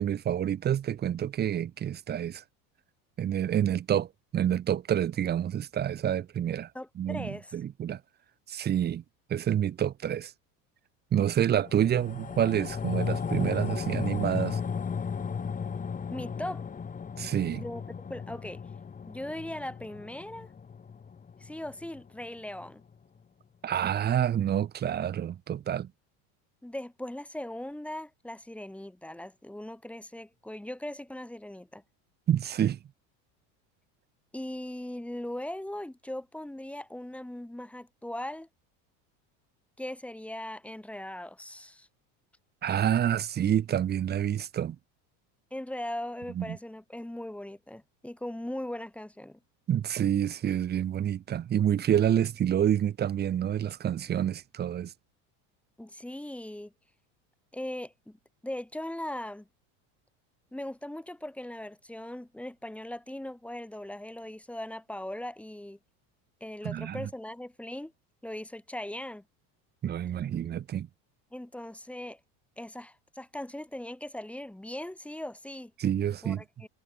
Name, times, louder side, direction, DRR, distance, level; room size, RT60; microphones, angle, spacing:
voice 1, 0.0-2.4 3.2-6.7 7.0-8.0 8.5-9.0 9.3-10.3 11.1-14.6 17.2-17.6 23.6-25.9 32.3-32.8 42.6-44.8 46.3-46.6 49.7-54.9 66.6-67.1 69.8-70.9 75.8-76.4, right 10 dB, 25° right, 1.0 m, -28 dB
voice 2, 6.7-7.6 16.1-16.6 17.5-18.6 19.1-20.5 21.4-22.8 26.6-31.8 34.3-38.5 39.8-41.9 45.5-49.4 55.8-56.7 57.5-58.2 58.4-59.5 60.5-65.8 66.4-67.9 68.2-69.2 71.3-72.2 72.6-75.7 76.2-76.7, left 1 dB, 5° left, 4.7 m, -39 dB
sound 1, 11.6-22.2 22.6-22.7, left 6 dB, 20° left, 5.2 m, -35 dB
cardioid pair, 140°, 38 cm